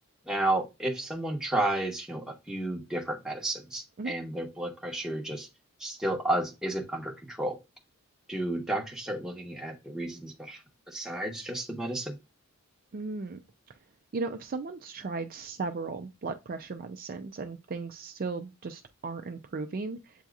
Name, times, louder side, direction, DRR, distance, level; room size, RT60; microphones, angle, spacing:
voice 1, 0.3-5.5 5.8-7.6 8.3-10.6 10.9-12.2, right 1 dB, 5° right, 0.9 m, -32 dB
voice 2, 12.9-13.4 14.1-20.1, right 3 dB, 40° right, 0.4 m, -36 dB
7.9 x 2.8 x 2.4 m
head